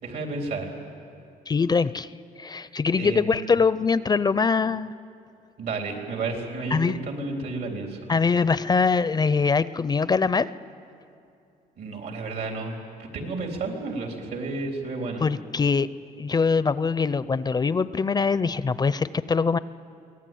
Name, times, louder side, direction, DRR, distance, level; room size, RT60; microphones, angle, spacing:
voice 1, 0.0-0.7 3.0-3.4 5.6-8.0 11.8-12.7 13.0-15.2, right 3 dB, 80° right, 2 dB, 3.8 m, -31 dB
voice 2, 1.5-2.1 2.4-4.9 6.7-7.0 8.1-10.5 15.2-15.9 16.2-19.6, left 5 dB, 25° left, 16 dB, 0.4 m, -23 dB
23.5 x 18.0 x 9.3 m, 2.6 s
cardioid pair, 115°, 16 cm